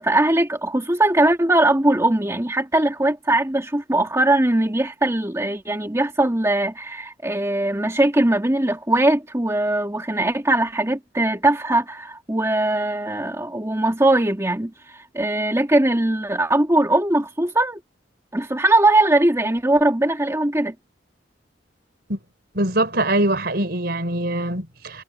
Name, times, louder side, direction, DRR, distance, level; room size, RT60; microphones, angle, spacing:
voice 1, 0.0-17.8 18.3-20.7, right 1 dB, 15° right, 2.0 m, -20 dB
voice 2, 22.5-25.0, right 1 dB, 60° right, 5.0 m, -23 dB
head